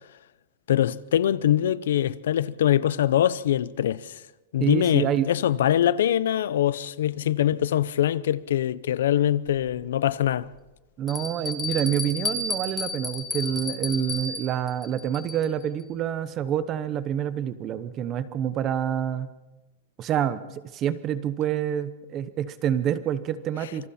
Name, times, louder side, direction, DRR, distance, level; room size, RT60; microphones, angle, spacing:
voice 1, 0.7-4.2 4.5-10.5, left 11 dB, 85° left, 0.7 m, -23 dB
voice 2, 4.6-5.3 11.0-19.3 20.0-23.9, right 9 dB, 20° right, 0.9 m, -27 dB
Bell, 9.5-9.6 10.2-10.3 11.1-15.6, left 2 dB, 10° left, 1.3 m, -32 dB
27.0 x 24.5 x 4.3 m
supercardioid pair, 175°, 0 cm